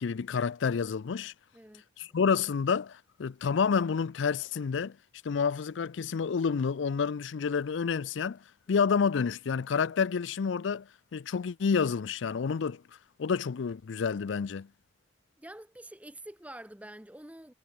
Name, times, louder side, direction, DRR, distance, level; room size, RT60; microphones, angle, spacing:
voice 1, 0.0-1.3 2.0-5.0 5.2-8.4 8.7-12.8 13.2-14.7, left 6 dB, 80° left, 0.4 m, -29 dB
voice 2, 1.5-2.2 15.4-17.5, right 1 dB, 10° right, 1.1 m, -47 dB
head